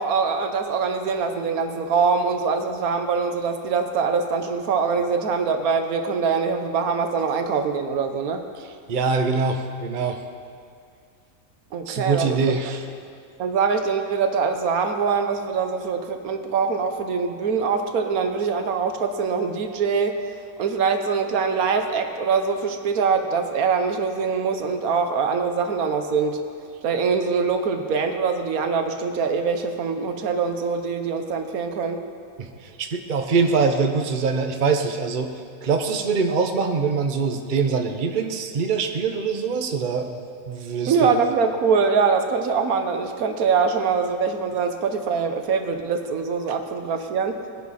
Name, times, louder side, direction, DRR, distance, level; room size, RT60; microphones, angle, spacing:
voice 1, 0.0-8.4 11.7-12.5 13.4-20.1 20.6-26.4 26.8-32.0 40.9-47.4, right 5 dB, 85° right, 6 dB, 1.4 m, -23 dB
voice 2, 8.6-10.2 11.9-12.8 32.4-35.3 35.6-41.2, right 5 dB, 40° right, 5 dB, 0.9 m, -24 dB
20.0 x 10.5 x 4.2 m, 2.2 s
omnidirectional pair, 1.5 m